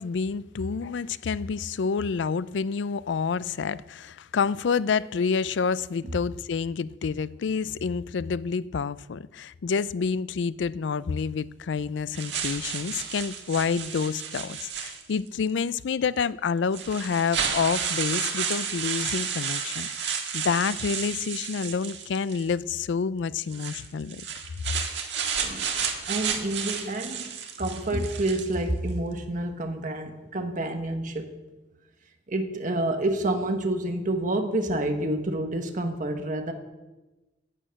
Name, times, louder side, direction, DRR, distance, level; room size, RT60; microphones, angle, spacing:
voice 1, 0.0-24.2, left 5 dB, 85° left, 0.4 m, -28 dB
sound 1, 12.1-15.3 16.2-16.3 16.7-22.5 23.4-28.6, right 7 dB, 75° right, 1.8 m, -32 dB
voice 2, 25.4-25.7 26.1-27.3 27.6-31.3 32.3-36.5, right 1 dB, 45° right, 1.2 m, -28 dB
11.0 x 9.3 x 7.6 m
head